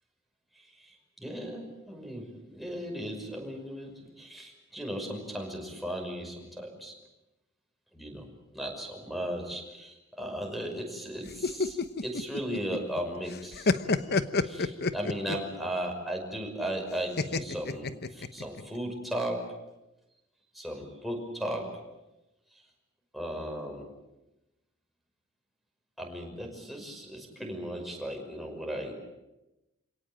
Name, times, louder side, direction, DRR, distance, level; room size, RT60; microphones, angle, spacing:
voice 1, 0.5-6.9 7.9-8.3 8.5-19.5 20.5-21.8 23.1-23.9 26.0-28.9, equal, ahead, 0 dB, 5.7 m, -36 dB
sound 1, 11.3-13.0 13.3-15.5 17.2-18.6, left 3 dB, 50° left, 1.1 m, -28 dB
28.0 x 18.0 x 8.8 m, 0.99 s
head